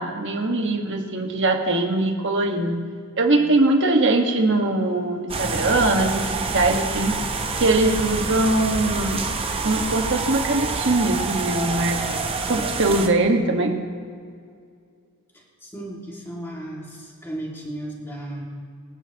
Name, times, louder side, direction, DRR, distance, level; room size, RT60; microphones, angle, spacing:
voice 1, 0.0-2.8 3.2-7.2 7.5-9.2 9.6-13.7, right 2 dB, 55° right, 2 dB, 1.5 m, -22 dB
sound 1, 5.3-13.1, right 4 dB, 25° right, 0.8 m, -27 dB
voice 2, 15.3-18.4, right 1 dB, 10° left, -3 dB, 2.2 m, -35 dB
23.5 x 9.7 x 3.0 m, 2.2 s
head